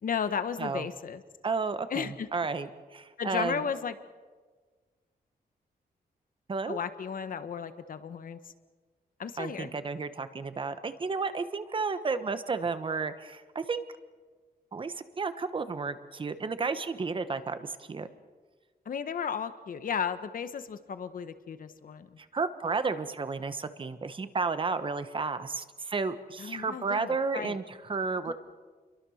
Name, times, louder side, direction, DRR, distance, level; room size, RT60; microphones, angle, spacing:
voice 1, 0.0-1.2 1.9-2.3 3.2-3.9 6.7-8.4 9.2-9.7 18.8-22.2 26.4-27.6 28.3-28.4, left 7 dB, 60° left, 11 dB, 1.3 m, -34 dB
voice 2, 1.4-3.6 6.5-6.8 9.4-13.8 14.7-18.1 22.3-28.3, right 4 dB, 30° right, 11 dB, 1.2 m, -32 dB
29.5 x 23.0 x 6.5 m, 1.4 s
wide cardioid pair, 175°, 16 cm